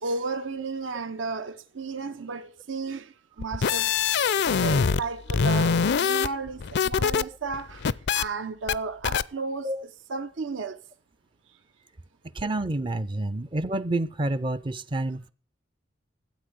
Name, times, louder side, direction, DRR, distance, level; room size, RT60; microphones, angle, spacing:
voice 1, 0.0-3.1 3.4-3.9 4.2-4.3 4.6-10.8, right 4 dB, 75° right, 0.8 m, -33 dB
sound 1, 3.4-5.0 5.3-7.2 7.5-8.2 8.7-8.8 9.0-9.2, left 6 dB, 60° left, 0.5 m, -23 dB
voice 2, 12.3-15.3, right 2 dB, 25° right, 0.5 m, -28 dB
13.5 x 7.9 x 6.7 m
head